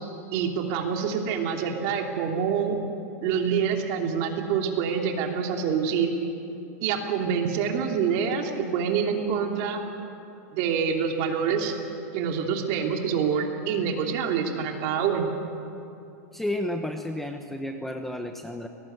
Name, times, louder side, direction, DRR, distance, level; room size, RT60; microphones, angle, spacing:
voice 1, 0.3-2.8 3.2-6.1 6.8-9.8 10.5-11.7 12.1-15.3, right 7 dB, 45° right, 2 dB, 3.1 m, -26 dB
voice 2, 16.3-18.7, left 1 dB, 5° left, 5 dB, 0.9 m, -31 dB
22.5 x 19.0 x 9.4 m, 2.8 s
supercardioid pair, 155°, 9 cm